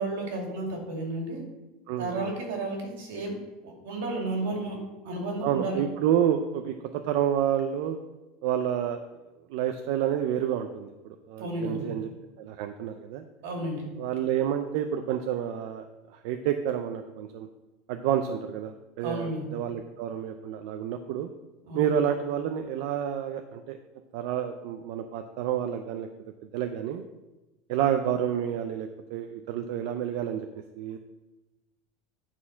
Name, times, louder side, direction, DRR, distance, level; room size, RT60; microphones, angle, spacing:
voice 1, 0.0-1.4 2.0-3.4 3.6-4.8 5.0-5.8 11.4-11.9 13.4-13.8 19.0-19.4 21.6-21.9, right 2 dB, 70° right, 0 dB, 2.5 m, -32 dB
voice 2, 1.9-2.3 5.4-8.0 8.4-9.0 9.5-12.1 12.4-13.2 14.0-15.9 16.2-17.5 17.9-21.3 21.7-23.8 24.1-26.1 26.5-27.0 27.7-30.5 30.8-31.0, right 10 dB, 50° right, 7 dB, 0.5 m, -29 dB
9.6 x 4.3 x 5.6 m, 1.1 s
supercardioid pair, 180°, 0 cm